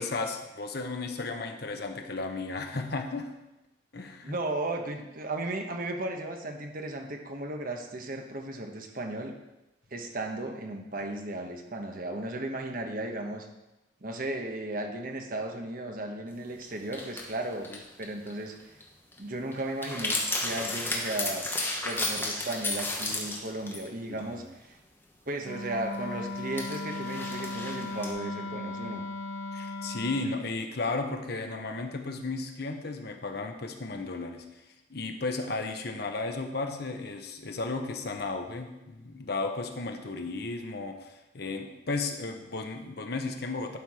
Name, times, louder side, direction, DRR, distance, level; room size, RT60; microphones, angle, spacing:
voice 1, 0.0-3.3 3.9-4.4 24.1-24.5 29.5-34.5 34.9-43.8, left 3 dB, 55° left, 5 dB, 0.9 m, -34 dB
voice 2, 4.2-9.3 9.9-13.5 14.0-17.7 18.0-18.7 19.2-21.5 21.8-24.8 25.3-29.0, right 2 dB, 45° right, 4 dB, 1.0 m, -35 dB
sound 1, 16.6-16.7 16.9-18.3 18.6-18.8 19.1-19.2 19.5-23.9 24.2-24.3 25.9-26.0 26.5-28.1, left 2 dB, 10° left, 1.0 m, -33 dB
Wind instrument woodwind instrument, 25.4-30.3, left 2 dB, 85° left, 0.8 m, -37 dB
11.5 x 4.5 x 4.8 m, 0.99 s
head